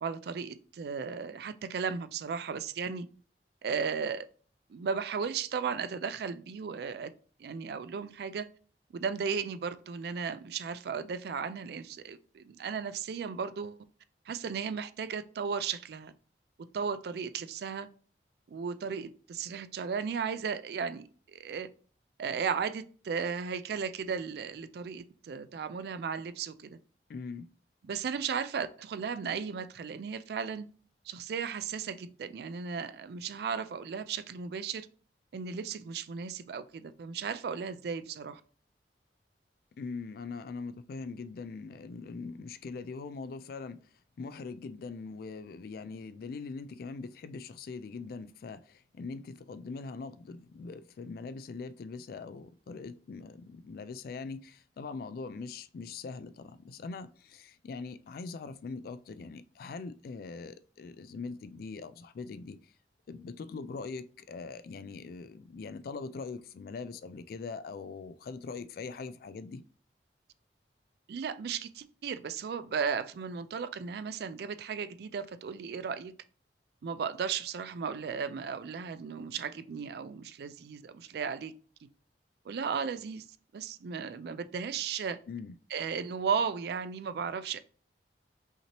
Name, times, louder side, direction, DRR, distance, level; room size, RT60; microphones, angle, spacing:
voice 1, 0.0-3.1 3.6-4.3 4.7-7.1 7.4-8.5 8.9-13.8 14.3-16.1 16.7-17.9 18.5-21.7 22.2-26.8 27.8-30.7 31.1-34.9 35.3-38.4 71.1-76.1 76.8-81.5 82.5-83.3 83.5-85.2 85.7-87.6, right 6 dB, 60° right, 0.3 m, -35 dB
voice 2, 27.1-27.5 39.8-43.8 44.2-62.6 63.1-69.6 85.3-85.5, left 4 dB, 55° left, 0.3 m, -42 dB
5.6 x 3.0 x 2.9 m
head